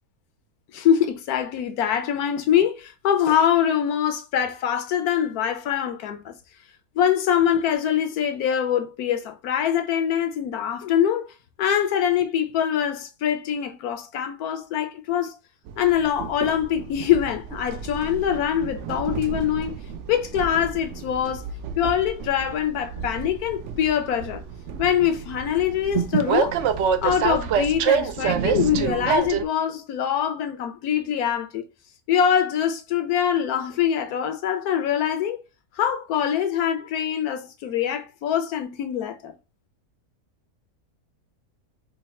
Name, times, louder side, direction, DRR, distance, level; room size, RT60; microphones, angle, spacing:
voice 1, 0.7-6.4 6.9-11.3 11.6-15.4 15.8-19.8 20.1-21.5 21.8-24.4 24.8-26.6 27.0-31.6 32.1-35.4 35.8-39.3, left 9 dB, 85° left, 1.2 m, -24 dB
Train, 15.7-29.4, right 7 dB, 65° right, 0.8 m, -28 dB
5.2 x 2.3 x 4.2 m
omnidirectional pair, 1.5 m